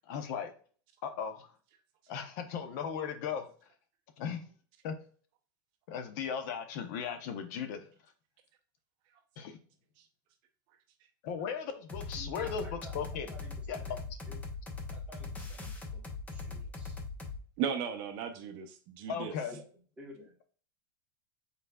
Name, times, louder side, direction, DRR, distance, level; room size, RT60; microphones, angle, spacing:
voice 1, 0.1-0.5 1.0-1.5 2.1-3.4 4.2-4.4 4.8-5.0 5.9-7.8 9.4-9.6 11.2-12.6 12.9-13.3 13.7-13.8 19.1-19.6, left 7 dB, 50° left, 8 dB, 0.8 m, -37 dB
sound 1, 11.9-17.4, left 3 dB, 15° left, 0.7 m, -41 dB
voice 2, 12.1-13.0 13.3-14.0 14.3-14.4 14.9-16.0 16.3-17.0 19.4-19.6 20.0-20.4, right 1 dB, 10° right, -2 dB, 1.3 m, -52 dB
voice 3, 17.6-19.3, right 7 dB, 45° right, 6 dB, 0.6 m, -35 dB
5.6 x 4.0 x 2.3 m, 0.42 s
supercardioid pair, 160°, 12 cm